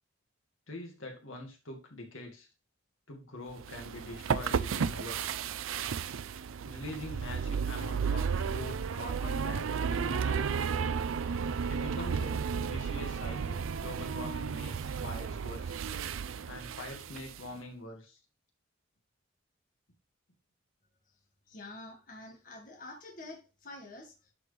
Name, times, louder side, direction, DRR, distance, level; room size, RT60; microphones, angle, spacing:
voice 1, 0.7-2.5 3.1-5.3 6.7-10.9 11.7-15.8 16.5-18.2, left 2 dB, 80° left, 1 dB, 2.1 m, -44 dB
sound 1, 3.6-17.5, right 6 dB, 85° right, 0.4 m, -33 dB
voice 2, 21.5-24.3, left 2 dB, 40° left, 1 dB, 1.8 m, -47 dB
11.0 x 4.7 x 3.4 m, 0.30 s
head